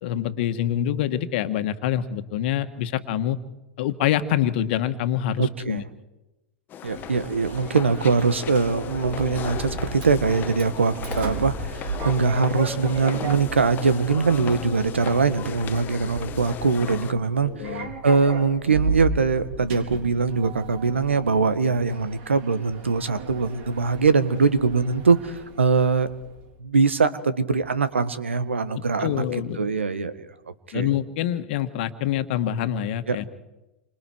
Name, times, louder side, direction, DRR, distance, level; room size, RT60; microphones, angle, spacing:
voice 1, 0.0-3.4 3.8-5.8 17.4-17.9 28.7-29.6 30.7-33.3, left 11 dB, 55° left, 9 dB, 1.7 m, -26 dB
voice 2, 5.4-5.9 6.8-26.1 26.6-29.2 29.6-30.3 30.7-30.9 33.1-33.2, right 4 dB, 85° right, 12 dB, 1.6 m, -22 dB
sound 1, 6.7-17.1, left 10 dB, 30° left, 1.2 m, -37 dB
Sliding door, 6.9-26.5, right 3 dB, 55° right, 4.2 m, -35 dB
28.5 x 25.5 x 4.7 m, 1.0 s
hypercardioid pair, 105°, 6 cm